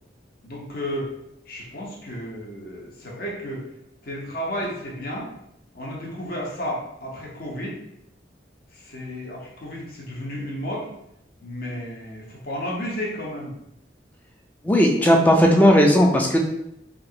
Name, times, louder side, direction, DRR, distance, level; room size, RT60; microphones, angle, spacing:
voice 1, 0.4-1.1 1.5-3.6 4.0-5.3 5.7-7.8 8.7-10.9 11.4-13.5, equal, 55° left, -3 dB, 0.8 m, -32 dB
voice 2, 14.6-16.4, equal, 10° left, 1 dB, 0.3 m, -16 dB
2.9 x 2.4 x 2.8 m, 0.80 s
head